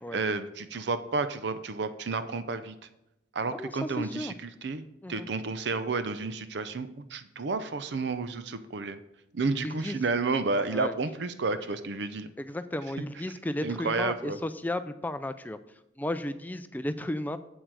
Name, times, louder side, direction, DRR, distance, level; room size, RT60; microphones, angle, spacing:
voice 1, 0.1-2.7 3.3-9.0 9.3-12.3 13.6-14.4, right 3 dB, 65° right, 11 dB, 0.5 m, -31 dB
voice 2, 3.5-4.3 5.0-5.3 9.6-10.0 10.7-10.9 12.4-15.6 16.0-17.4, left 1 dB, 10° left, 11 dB, 0.3 m, -34 dB
8.1 x 7.6 x 4.7 m, 0.86 s
head